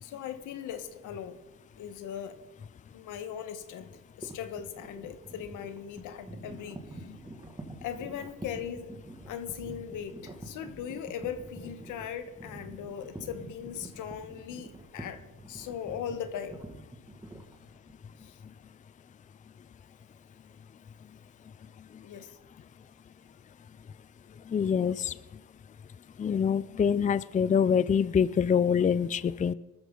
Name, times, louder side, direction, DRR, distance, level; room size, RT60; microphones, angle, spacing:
voice 1, 0.0-1.4 1.8-2.4 2.9-3.9 4.2-7.1 7.8-8.9 9.3-16.6 18.2-18.4 22.0-22.4, left 8 dB, 90° left, 9 dB, 1.3 m, -39 dB
sound 1, 4.2-18.3, right 2 dB, 15° right, 2.0 m, -46 dB
voice 2, 24.5-25.1 26.2-29.5, left 7 dB, 25° left, 16 dB, 0.4 m, -25 dB
21.0 x 13.0 x 3.9 m, 1.1 s
cardioid pair, 90°, 30 cm